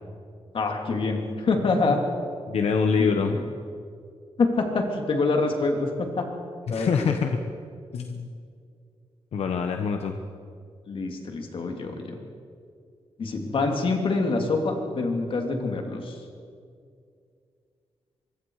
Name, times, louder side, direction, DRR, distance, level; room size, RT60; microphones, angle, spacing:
voice 1, 0.5-2.0 3.0-3.4 4.4-6.3 6.7-7.3 10.9-12.2 13.2-16.2, left 3 dB, 55° left, 3 dB, 3.0 m, -26 dB
voice 2, 2.5-3.4 6.7-7.4 7.9-8.3 9.3-10.2, left 5 dB, 85° left, 5 dB, 1.2 m, -25 dB
24.5 x 23.5 x 4.9 m, 2.3 s
wide cardioid pair, 145°, 10 cm